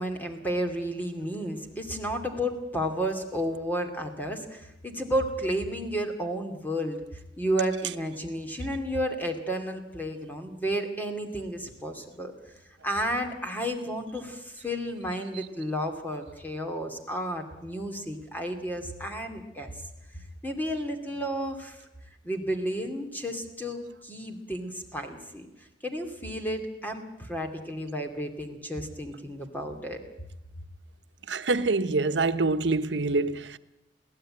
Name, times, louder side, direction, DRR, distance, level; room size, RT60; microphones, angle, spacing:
voice 1, 0.0-7.0 7.4-12.3 12.8-19.7 20.1-21.8 22.2-25.5 25.8-30.0, equal, 10° left, 2.6 m, -32 dB
voice 2, 31.3-33.6, right 3 dB, 80° right, 1.0 m, -25 dB
22.5 x 16.5 x 8.9 m
head